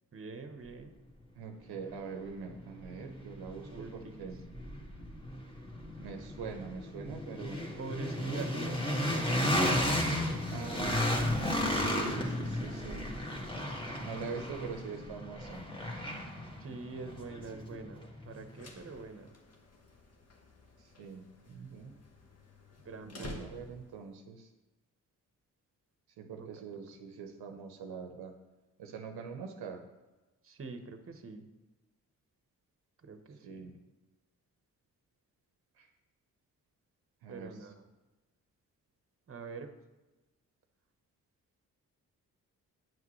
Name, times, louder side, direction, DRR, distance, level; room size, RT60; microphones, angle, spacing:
voice 1, 0.1-0.9 3.7-4.2 7.8-9.3 16.6-19.3 22.8-23.5 26.4-26.5 30.4-31.5 33.0-33.7 37.3-37.8 39.3-39.7, right 4 dB, 35° right, 8 dB, 0.9 m, -44 dB
voice 2, 1.3-4.4 6.0-7.6 10.5-13.1 14.0-15.6 20.8-21.9 23.1-24.5 26.2-28.3 28.8-29.8 33.4-33.8 35.8-35.9 37.2-37.5, right 5 dB, 75° right, 5 dB, 0.8 m, -43 dB
sound 1, 1.9-2.0 2.4-18.4, left 1 dB, 15° left, 1.7 m, -34 dB
sound 2, 18.3-24.1, left 2 dB, 40° left, 1.2 m, -51 dB
8.9 x 5.9 x 3.1 m, 1.1 s
supercardioid pair, 45°, 38 cm